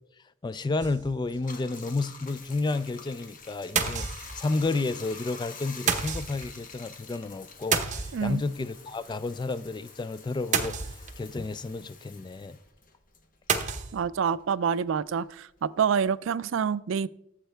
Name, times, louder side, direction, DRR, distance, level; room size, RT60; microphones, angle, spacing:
voice 1, 0.4-4.1 4.3-12.6, left 3 dB, 20° left, 0.3 m, -31 dB
sound 1, 0.8-1.4 1.8-1.9 2.1-2.2 3.8-4.6 5.9-6.5 7.7-8.6 10.5-11.3 13.5-14.0, right 6 dB, 40° right, 0.9 m, -29 dB
Bathtub (filling or washing), 1.3-14.1 14.4-16.2, left 5 dB, 45° left, 1.1 m, -47 dB
voice 2, 13.9-17.1, right 7 dB, 75° right, 0.4 m, -27 dB
13.5 x 7.4 x 3.4 m
head